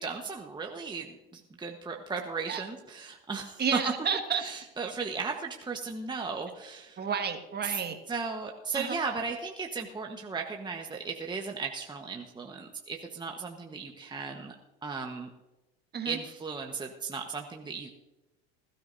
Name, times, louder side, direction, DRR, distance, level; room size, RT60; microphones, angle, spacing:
voice 1, 0.0-3.6 4.4-7.0 7.6-7.8 8.1-14.6 14.8-15.3 16.0-17.9, right 4 dB, 15° right, 2 dB, 1.3 m, -36 dB
voice 2, 3.6-4.4 7.0-8.0 8.7-9.0 15.9-16.2, right 6 dB, 30° right, 6 dB, 1.9 m, -31 dB
20.0 x 13.5 x 2.7 m, 1.0 s
hypercardioid pair, 85°, 31 cm